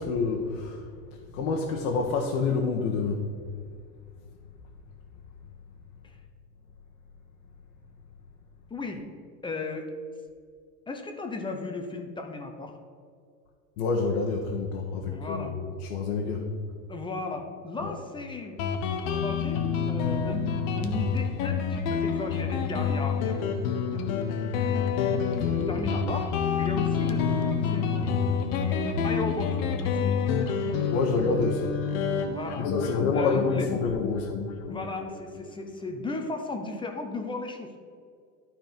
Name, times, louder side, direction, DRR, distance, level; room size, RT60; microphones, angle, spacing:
voice 1, 0.0-3.3 13.8-16.5 17.8-17.9 25.4-25.8 30.9-34.4, left 4 dB, 65° left, 0 dB, 1.3 m, -28 dB
voice 2, 8.7-9.0 9.4-9.9 10.9-12.7 15.0-15.6 16.9-18.6 19.1-23.6 23.9-24.0 25.3-28.2 28.5-30.2 32.3-32.7 33.1-33.7 34.7-37.7, left 2 dB, 10° left, 4 dB, 0.8 m, -36 dB
Guitar, 18.6-35.8, left 6 dB, 45° left, 1.0 m, -28 dB
12.0 x 4.4 x 5.3 m, 2.1 s
hypercardioid pair, 120°, 48 cm